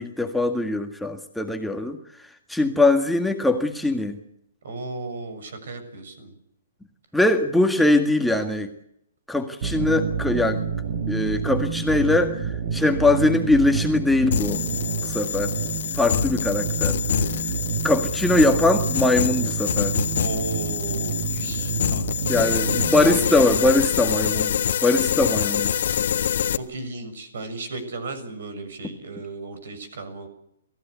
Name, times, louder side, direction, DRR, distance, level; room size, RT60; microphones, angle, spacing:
voice 1, 0.0-2.0 2.5-4.2 7.1-8.7 9.3-10.6 11.1-14.6 15.1-15.5 16.0-17.0 17.8-20.0 22.3-24.5 24.8-25.7, left 2 dB, 5° left, 4 dB, 1.8 m, -21 dB
voice 2, 4.6-6.4 20.1-22.4 22.9-23.6 26.5-30.3, right 3 dB, 65° right, 11 dB, 6.9 m, -34 dB
sound 1, 9.6-23.2, right 6 dB, 50° right, 4.9 m, -29 dB
sound 2, 14.3-26.6, left 9 dB, 60° left, 1.2 m, -26 dB
28.5 x 15.5 x 8.2 m, 0.74 s
hypercardioid pair, 130°, 0 cm